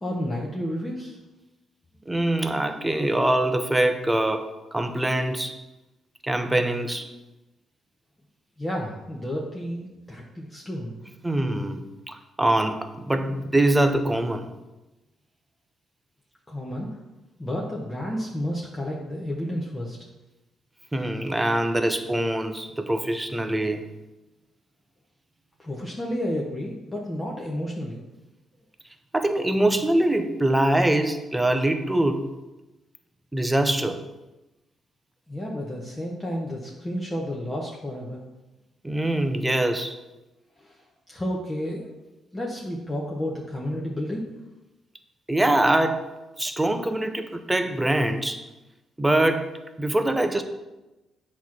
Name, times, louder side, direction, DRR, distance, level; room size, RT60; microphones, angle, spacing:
voice 1, 0.0-1.2 8.6-10.9 16.5-16.9 17.4-20.0 25.6-28.0 35.3-38.2 40.6-40.8 41.1-41.9 42.3-44.3, equal, 15° left, -3 dB, 1.1 m, -31 dB
voice 2, 2.1-5.6 6.2-7.1 11.2-14.5 20.9-23.8 29.1-32.3 33.3-34.0 38.8-40.0 45.3-46.1 46.4-48.4 49.0-50.4, right 1 dB, 10° right, 8 dB, 0.7 m, -24 dB
8.0 x 3.2 x 6.0 m, 1.0 s
cardioid pair, 90°, 0 cm